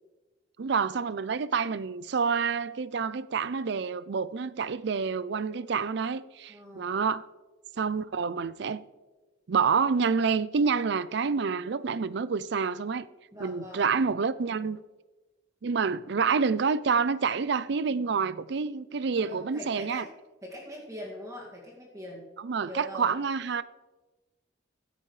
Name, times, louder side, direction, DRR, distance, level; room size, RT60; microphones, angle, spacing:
voice 1, 0.6-7.3 7.8-8.8 9.5-13.1 13.4-14.8 15.6-20.0 22.4-23.6, right 5 dB, 65° right, 0.5 m, -28 dB
voice 2, 6.5-7.0 13.3-13.9 19.2-20.1 20.4-22.3 22.6-23.1, equal, 20° right, 2.2 m, -42 dB
15.5 x 13.0 x 3.3 m
head